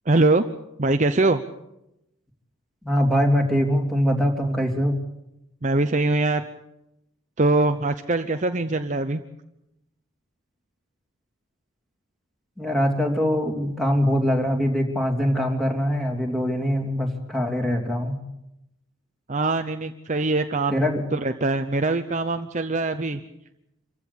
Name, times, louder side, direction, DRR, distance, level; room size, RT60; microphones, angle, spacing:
voice 1, 0.1-0.4 0.8-1.4 5.6-6.5 7.4-9.2 19.3-20.8 21.1-23.2, right 2 dB, 35° right, 7 dB, 0.8 m, -22 dB
voice 2, 2.8-5.0 12.6-18.2 20.7-21.0, equal, ahead, 0 dB, 3.1 m, -23 dB
26.0 x 15.5 x 8.6 m, 0.87 s
head